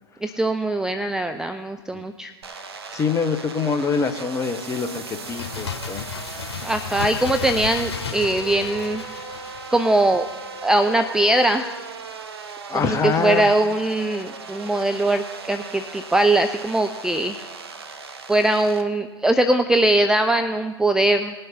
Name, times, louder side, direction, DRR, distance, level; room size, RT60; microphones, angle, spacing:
voice 1, 0.2-2.3 6.6-9.0 9.7-10.3 10.6-11.7 12.7-17.4 18.3-21.3, right 1 dB, 5° right, 8 dB, 0.4 m, -21 dB
sound 1, 2.4-18.8, right 5 dB, 70° right, 1.0 m, -38 dB
voice 2, 2.9-6.1 12.7-13.5, left 5 dB, 20° left, 8 dB, 1.0 m, -25 dB
Bird, 5.1-10.6 10.9-11.0, left 6 dB, 75° left, 0.8 m, -34 dB
19.5 x 6.8 x 4.3 m, 1.4 s
figure-of-eight pair, 85°, 14 cm